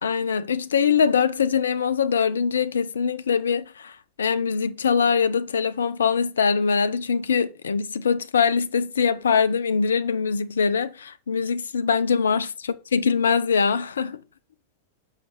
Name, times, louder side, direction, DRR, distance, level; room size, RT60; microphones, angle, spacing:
voice 1, 0.0-12.5 12.9-14.2, left 6 dB, 70° left, 0.5 m, -23 dB
6.4 x 5.7 x 4.1 m
figure-of-eight pair, 90°, 0 cm